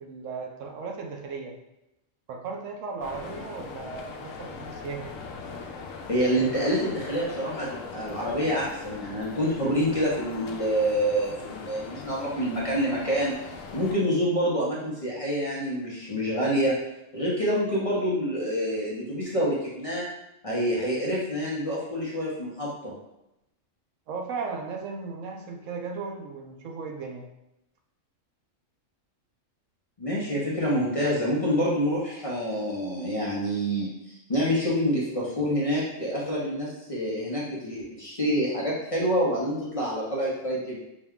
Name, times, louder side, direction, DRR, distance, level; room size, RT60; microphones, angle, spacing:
voice 1, 0.0-1.6 2.3-5.2 24.1-27.3, right 4 dB, 75° right, 3 dB, 1.0 m, -36 dB
sound 1, 3.0-13.9, left 5 dB, 80° left, 1.0 m, -40 dB
voice 2, 6.1-13.3 13.7-16.7 17.1-20.0 20.4-22.9 30.0-40.8, equal, 35° left, -5 dB, 0.7 m, -27 dB
4.6 x 2.2 x 3.5 m, 0.87 s
omnidirectional pair, 1.3 m